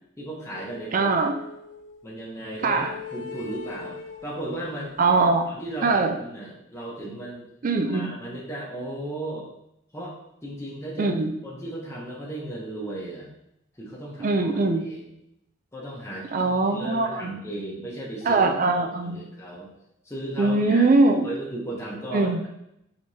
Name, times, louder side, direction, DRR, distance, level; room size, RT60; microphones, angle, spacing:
voice 1, 0.2-1.1 2.0-2.8 3.1-4.9 5.5-7.5 7.8-9.5 9.9-11.2 11.4-13.3 13.8-15.1 15.7-18.4 18.8-19.7 20.0-20.9 21.2-22.5, right 1 dB, 15° left, -5 dB, 0.8 m, -36 dB
sound 1, 0.5-2.1 2.6-5.4, left 5 dB, 75° left, 0.4 m, -41 dB
voice 2, 0.9-1.3 2.6-2.9 5.0-5.5 5.8-6.2 7.6-8.1 11.0-11.3 14.2-14.9 16.3-17.3 18.2-19.2 20.4-21.3 22.1-22.4, right 3 dB, 45° right, 5 dB, 0.4 m, -21 dB
4.8 x 3.4 x 2.7 m, 0.80 s
head